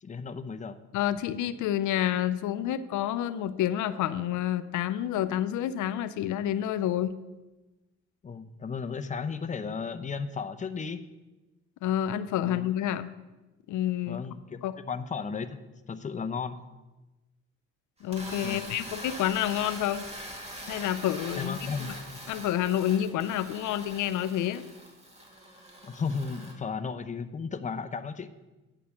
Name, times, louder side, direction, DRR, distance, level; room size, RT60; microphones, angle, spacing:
voice 1, 0.0-0.8 8.2-11.0 12.4-12.7 14.1-15.6 15.9-16.6 18.4-18.7 21.3-21.9 25.8-28.3, left 5 dB, 25° left, 10 dB, 0.6 m, -34 dB
voice 2, 0.9-7.1 11.8-13.1 13.7-14.2 14.6-14.8 18.0-20.0 20.7-21.5 22.3-24.6, left 11 dB, 80° left, 13 dB, 0.6 m, -29 dB
sound 1, 18.0-26.5, right 1 dB, 20° right, 2.0 m, -43 dB
9.5 x 4.9 x 7.1 m, 1.1 s
cardioid pair, 90°, 30 cm